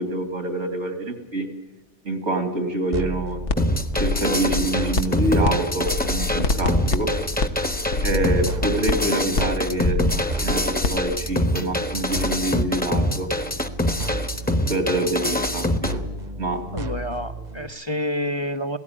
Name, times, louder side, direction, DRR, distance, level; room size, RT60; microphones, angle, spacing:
voice 1, 0.0-1.5 2.0-3.4 3.9-7.1 8.0-13.3 14.7-16.0 16.4-16.6, right 1 dB, 80° right, 6 dB, 3.0 m, -26 dB
sound 1, 2.9-17.7, right 1 dB, 40° right, 1.2 m, -33 dB
sound 2, 3.5-3.6 3.9-5.5 5.8-11.0, left 3 dB, 85° left, 1.4 m, -25 dB
sound 3, 3.6-15.9, left 1 dB, 10° left, 1.1 m, -25 dB
voice 2, 16.7-18.8, left 1 dB, 30° left, 6 dB, 0.7 m, -28 dB
16.5 x 16.5 x 10.0 m, 1.0 s
omnidirectional pair, 1.2 m